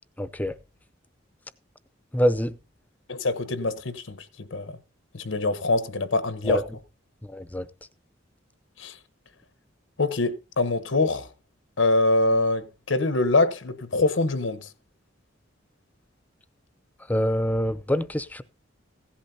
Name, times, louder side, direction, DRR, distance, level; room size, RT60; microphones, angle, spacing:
voice 1, 0.2-0.6 2.1-2.5 6.4-6.6 7.3-7.7 17.1-18.4, equal, 10° left, 0.6 m, -25 dB
voice 2, 3.1-4.8 5.1-6.6 8.8-8.9 10.0-11.3 11.8-14.7, left 2 dB, 90° left, 1.0 m, -24 dB
16.0 x 11.5 x 2.8 m
head